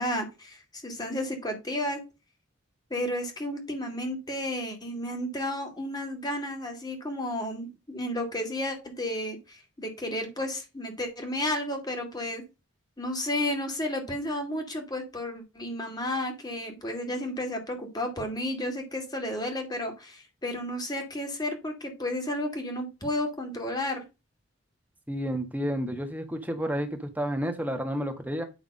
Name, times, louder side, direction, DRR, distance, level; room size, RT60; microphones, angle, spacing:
voice 1, 0.0-2.0 2.9-12.4 13.0-24.0, left 1 dB, 20° left, 3 dB, 2.1 m, -32 dB
voice 2, 25.1-28.4, equal, 10° right, 5 dB, 1.3 m, -30 dB
9.3 x 3.5 x 5.3 m, 0.26 s
head